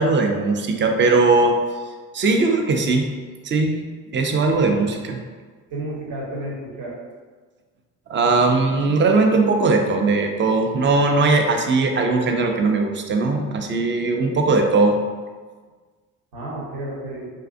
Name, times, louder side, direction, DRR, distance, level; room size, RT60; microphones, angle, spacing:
voice 1, 0.0-1.6 2.1-3.1 3.4-3.8 4.1-5.2 8.1-15.0, right 3 dB, 30° right, 3 dB, 0.3 m, -19 dB
voice 2, 5.7-6.9 16.3-17.3, right 1 dB, 55° right, -5 dB, 0.9 m, -31 dB
2.5 x 2.4 x 2.4 m, 1.4 s
hypercardioid pair, 50°, 41 cm